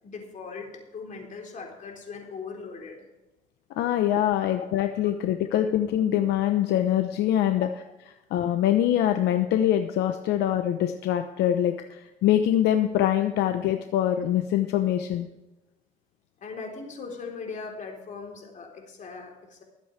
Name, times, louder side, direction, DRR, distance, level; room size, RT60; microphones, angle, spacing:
voice 1, 0.0-3.1 4.0-4.1 4.4-4.5 7.6-7.7 16.4-19.6, left 4 dB, 50° left, 1 dB, 3.8 m, -39 dB
voice 2, 3.8-7.7 8.3-15.3, left 11 dB, 80° left, 7 dB, 0.8 m, -24 dB
21.5 x 8.6 x 3.4 m, 1.0 s
cardioid pair, 110°, 17 cm